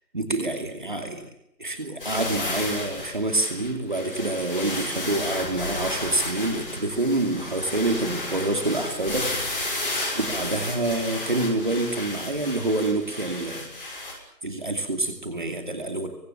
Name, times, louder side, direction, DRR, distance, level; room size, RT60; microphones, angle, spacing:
voice 1, 0.1-1.3 1.6-9.9 10.1-13.7 14.4-16.1, right 2 dB, 30° right, 5 dB, 2.4 m, -27 dB
sound 1, 2.0-14.1, left 2 dB, 35° left, 7.0 m, -32 dB
29.0 x 24.0 x 7.2 m, 0.79 s
figure-of-eight pair, 170°, 49 cm